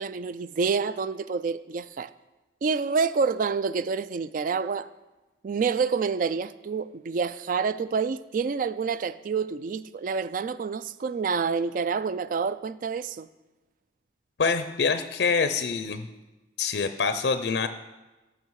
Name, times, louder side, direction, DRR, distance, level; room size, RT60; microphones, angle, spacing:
voice 1, 0.0-2.1 2.6-4.9 5.4-13.3, right 5 dB, 50° right, 0.3 m, -28 dB
voice 2, 14.4-16.1 16.6-17.7, left 5 dB, 70° left, 0.5 m, -25 dB
14.0 x 5.8 x 4.7 m
head